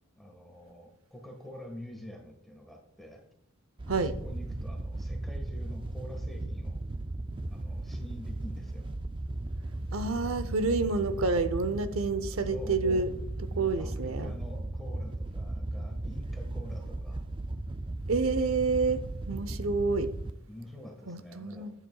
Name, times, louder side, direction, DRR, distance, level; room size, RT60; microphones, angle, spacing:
voice 1, 0.2-3.2 3.9-6.8 7.5-8.9 12.4-13.0 13.5-17.3 20.5-21.7, left 1 dB, ahead, 1.5 m, -46 dB
Wind / Boat Water vehicle, 3.8-20.3, right 2 dB, 25° right, 0.4 m, -36 dB
voice 2, 9.9-13.1 13.6-14.3 18.1-19.0 19.3-20.1 21.1-21.7, right 3 dB, 70° right, 0.7 m, -28 dB
11.5 x 9.2 x 2.3 m
head